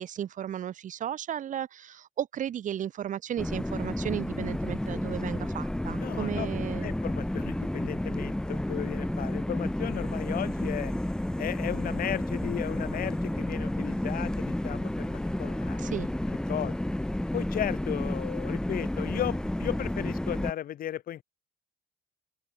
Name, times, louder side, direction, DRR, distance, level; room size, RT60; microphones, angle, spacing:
voice 1, 0.0-6.9 15.8-16.1, right 10 dB, 50° right, 1.0 m, -34 dB
sound 1, 3.4-20.5, left 1 dB, 5° left, 1.0 m, -31 dB
voice 2, 6.0-6.5 6.8-10.9 11.4-15.8 16.5-16.7 17.3-21.2, left 11 dB, 60° left, 1.9 m, -35 dB
open air
cardioid pair, 110°, 17 cm